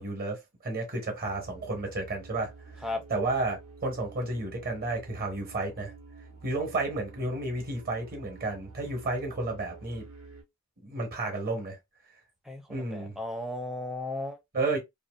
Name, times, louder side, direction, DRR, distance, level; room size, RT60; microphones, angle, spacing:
voice 1, 0.0-2.5 3.1-5.9 6.4-10.0 10.8-11.8 12.7-13.1 14.5-14.8, right 2 dB, 45° right, 1.0 m, -32 dB
sound 1, 1.2-10.4, right 4 dB, 85° right, 0.9 m, -49 dB
voice 2, 12.5-14.4, left 2 dB, ahead, 0.5 m, -35 dB
2.7 x 2.3 x 2.3 m
head